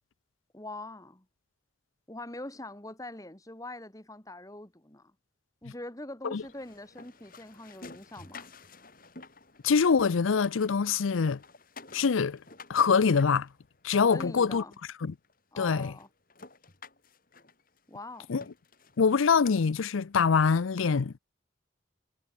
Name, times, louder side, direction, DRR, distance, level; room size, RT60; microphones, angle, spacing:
voice 1, 0.5-1.3 2.1-5.1 5.6-8.5 14.1-14.8 15.5-16.1 17.9-18.4, left 2 dB, 15° left, 1.8 m, -43 dB
sound 1, 6.3-10.0 10.3-14.0 14.7-14.8 15.2-15.3 15.6-19.9, left 3 dB, 45° left, 3.6 m, -52 dB
voice 2, 9.6-11.4 11.9-12.4 12.7-13.5 13.8-14.6 15.0-15.1 15.6-15.9 18.3-18.4 19.0-21.2, left 5 dB, 85° left, 0.5 m, -24 dB
head